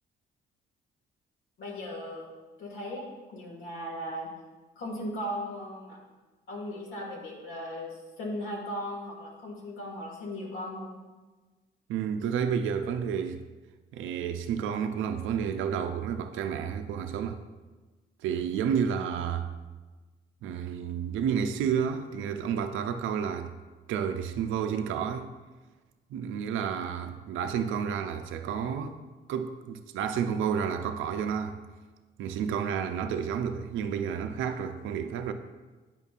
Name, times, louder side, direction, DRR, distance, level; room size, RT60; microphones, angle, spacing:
voice 1, 1.6-2.3 2.6-4.3 4.8-6.0 6.5-11.0, equal, 80° left, 1.8 m, -37 dB
voice 2, 11.9-13.4 13.9-17.4 18.2-19.5 20.4-23.5 23.9-25.3 26.1-29.0 29.3-31.6 32.2-35.3, right 7 dB, 85° right, 0.5 m, -30 dB
8.8 x 5.3 x 2.4 m
cardioid pair, 90°, 20 cm